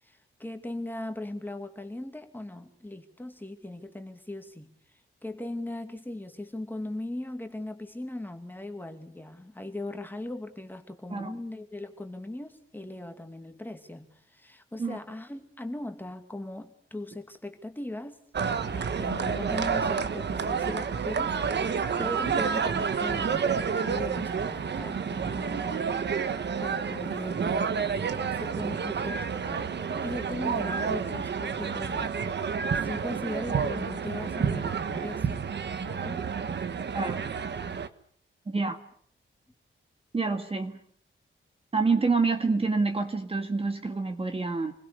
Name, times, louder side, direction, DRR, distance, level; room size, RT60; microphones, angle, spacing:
voice 1, 0.0-18.2 18.7-23.4 23.8-25.9 26.6-27.7 28.2-32.1 32.8-35.5 35.8-36.2, left 1 dB, 10° left, 6 dB, 2.5 m, -39 dB
sound 1, 18.3-37.9, right 6 dB, 55° right, 1.4 m, -29 dB
voice 2, 38.5-38.8 40.1-40.8 41.7-44.7, right 4 dB, 25° right, 6 dB, 2.0 m, -27 dB
29.0 x 22.0 x 6.9 m, 0.62 s
wide cardioid pair, 175°, 21 cm